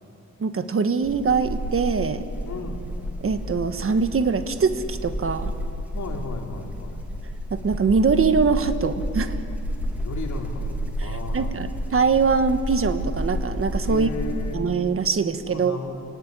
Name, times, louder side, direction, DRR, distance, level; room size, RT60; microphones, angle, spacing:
voice 1, 0.4-2.2 3.2-5.5 7.5-9.4 11.0-14.1 14.5-15.8, right 5 dB, 45° right, 9 dB, 1.3 m, -23 dB
sound 1, 1.0-14.5, equal, 5° right, 3.0 m, -30 dB
voice 2, 2.4-2.8 5.9-7.0 9.9-11.5 13.9-14.7 15.5-16.0, left 4 dB, 65° left, 0 dB, 3.8 m, -35 dB
28.0 x 18.0 x 9.7 m, 2.7 s
wide cardioid pair, 135°, 31 cm